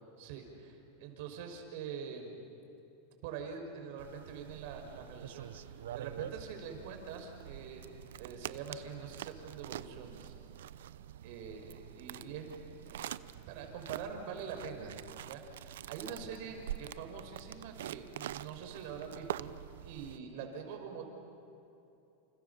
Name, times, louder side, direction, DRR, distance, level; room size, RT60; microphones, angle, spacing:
voice 1, 0.2-2.5 3.2-7.8 8.2-10.3 11.2-12.5 12.9-13.1 13.5-15.0 15.3-19.5 19.8-21.1, right 6 dB, 65° right, 4 dB, 5.7 m, -44 dB
sound 1, 4.0-20.2, right 11 dB, 85° right, 0.7 m, -46 dB
29.0 x 29.0 x 7.2 m, 2.9 s
supercardioid pair, 125°, 0 cm